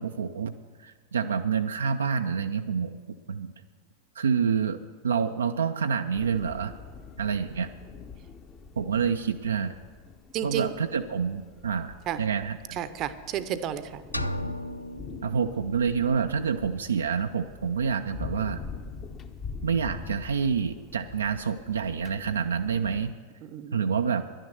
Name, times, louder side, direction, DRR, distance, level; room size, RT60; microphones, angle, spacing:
voice 1, 0.0-3.0 3.3-3.5 4.2-4.8 5.0-6.7 7.2-7.7 8.8-9.8 10.4-12.8 15.2-18.6 19.6-23.1 23.7-24.2, right 6 dB, 70° right, 6 dB, 0.4 m, -28 dB
sound 1, 6.1-23.1, left 5 dB, 25° left, 0.8 m, -44 dB
voice 2, 10.3-10.7 12.1-12.2 12.7-14.0 23.4-23.8, right 10 dB, 35° right, 13 dB, 0.7 m, -32 dB
sound 2, 14.1-16.1, equal, 85° left, 0.3 m, -35 dB
11.0 x 9.9 x 6.6 m, 1.5 s
figure-of-eight pair, 90°, 0 cm